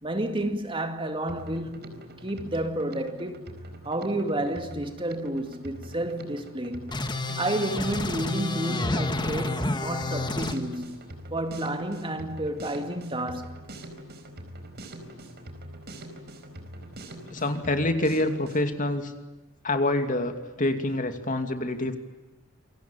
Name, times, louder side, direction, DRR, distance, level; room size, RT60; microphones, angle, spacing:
voice 1, 0.0-1.9 2.2-3.4 3.8-6.9 7.4-11.0 11.3-13.6, right 1 dB, 25° right, 2.3 m, -30 dB
Drum kit, 1.3-18.7, right 1 dB, 50° right, 4.5 m, -43 dB
sound 1, 6.9-10.6, left 2 dB, 20° left, 1.7 m, -30 dB
voice 2, 17.3-19.1 19.6-22.0, left 1 dB, 40° left, 2.6 m, -26 dB
28.0 x 23.0 x 8.9 m
head